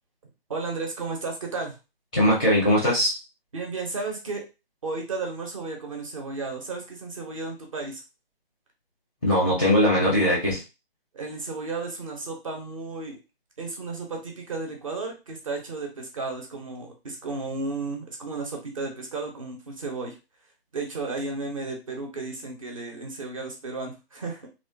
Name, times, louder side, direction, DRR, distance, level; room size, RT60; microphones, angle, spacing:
voice 1, 0.5-1.8 3.5-4.4 4.8-8.0 11.1-13.2 13.6-20.2 20.7-24.5, right 3 dB, 35° right, 2 dB, 0.7 m, -33 dB
voice 2, 2.1-3.1 9.2-10.6, equal, 10° left, -6 dB, 0.5 m, -20 dB
3.0 x 2.2 x 2.7 m, 0.28 s
figure-of-eight pair, 150°, 30 cm